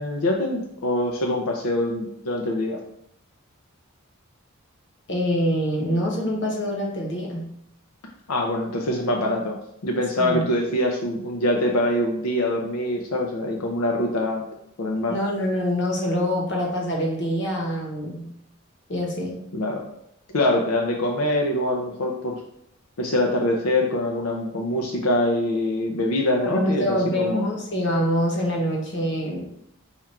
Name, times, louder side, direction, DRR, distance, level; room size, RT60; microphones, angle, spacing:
voice 1, 0.0-2.8 8.3-9.6 9.8-14.4 14.8-15.2 19.5-19.8 20.3-22.4 23.0-27.5, left 1 dB, 90° left, 1 dB, 0.6 m, -24 dB
voice 2, 5.1-7.5 10.2-10.4 15.1-18.3 18.9-19.4 26.4-29.4, equal, 55° left, -1 dB, 1.0 m, -25 dB
4.4 x 2.4 x 4.4 m, 0.75 s
head